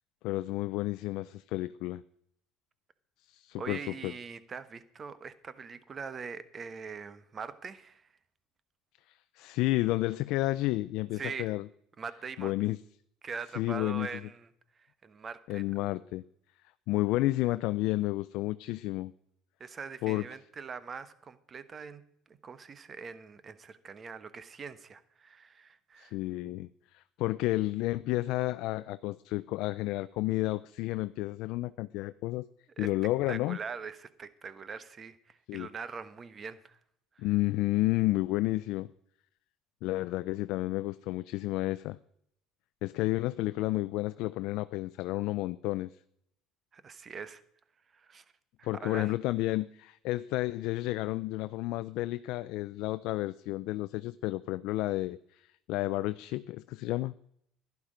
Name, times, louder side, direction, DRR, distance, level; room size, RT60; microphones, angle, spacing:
voice 1, 0.2-2.0 3.2-4.1 9.1-11.7 12.4-12.8 13.6-14.1 15.5-16.2 16.9-19.1 20.0-20.2 26.0-26.7 26.9-32.5 32.8-33.6 35.5-35.7 37.2-38.9 39.8-42.0 42.8-45.9 48.6-57.1, left 18 dB, 70° left, 14 dB, 0.4 m, -31 dB
voice 2, 3.6-8.0 11.2-11.5 12.0-12.5 13.2-14.5 15.0-15.6 19.6-22.0 22.4-26.2 32.8-32.9 33.3-36.8 37.1-37.3 46.7-47.4 47.9-48.2 48.6-49.1, right 5 dB, 30° right, 14 dB, 1.1 m, -42 dB
11.5 x 11.0 x 5.0 m, 0.70 s
cardioid pair, 115°, 0 cm